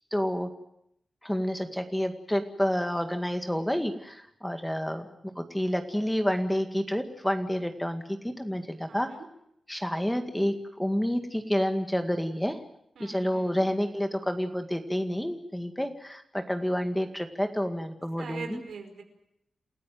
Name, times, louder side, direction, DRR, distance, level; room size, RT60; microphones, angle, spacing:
voice 1, 0.1-0.5 1.2-5.1 5.4-9.1 9.7-12.6 13.0-18.6, equal, 5° left, 7 dB, 2.0 m, -29 dB
voice 2, 8.9-9.2 13.0-13.6 18.2-19.0, right 5 dB, 85° right, 5 dB, 5.0 m, -42 dB
28.0 x 15.5 x 9.3 m, 0.78 s
wide cardioid pair, 95°, 0 cm